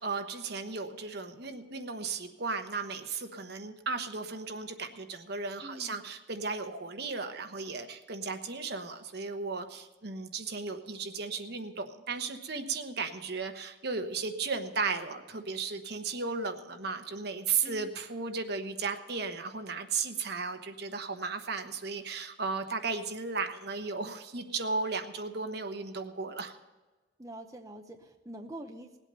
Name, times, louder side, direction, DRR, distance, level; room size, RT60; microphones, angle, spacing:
voice 1, 0.0-26.5, right 4 dB, 60° right, 7 dB, 1.1 m, -35 dB
voice 2, 5.6-6.1 12.5-12.8 17.6-17.9 27.2-29.0, right 1 dB, 20° right, 4 dB, 0.7 m, -45 dB
19.0 x 8.2 x 5.4 m, 1.2 s
head